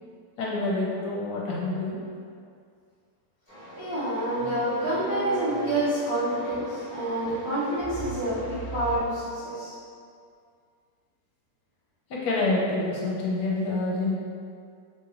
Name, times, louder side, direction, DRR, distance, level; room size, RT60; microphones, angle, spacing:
voice 1, 0.4-2.0 12.1-14.1, left 2 dB, 80° left, -5 dB, 1.2 m, -27 dB
sound 1, 3.5-9.0, right 2 dB, 10° right, 1.0 m, -37 dB
voice 2, 3.8-8.4 8.7-9.7, right 1 dB, 35° right, -13 dB, 0.3 m, -28 dB
2.9 x 2.9 x 2.5 m, 2.3 s
omnidirectional pair, 1.9 m